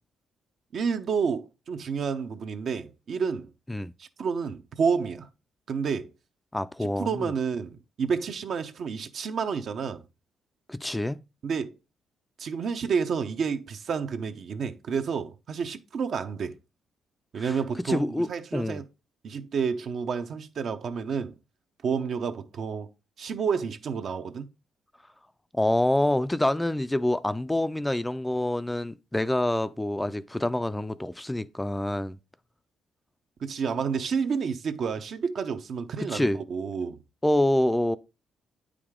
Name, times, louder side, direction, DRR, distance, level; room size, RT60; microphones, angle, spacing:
voice 1, 0.7-3.5 4.0-5.3 5.7-6.1 6.8-10.0 11.4-11.8 12.4-16.5 17.3-18.9 19.2-21.3 21.8-22.9 23.2-24.5 33.4-37.0, right 6 dB, 60° right, 0.7 m, -30 dB
voice 2, 6.5-7.3 10.7-11.2 17.4-17.6 17.9-18.8 25.5-32.2 36.0-36.4 37.2-38.0, left 1 dB, 10° left, 0.3 m, -26 dB
8.7 x 4.9 x 3.6 m
cardioid pair, 90°, 0 cm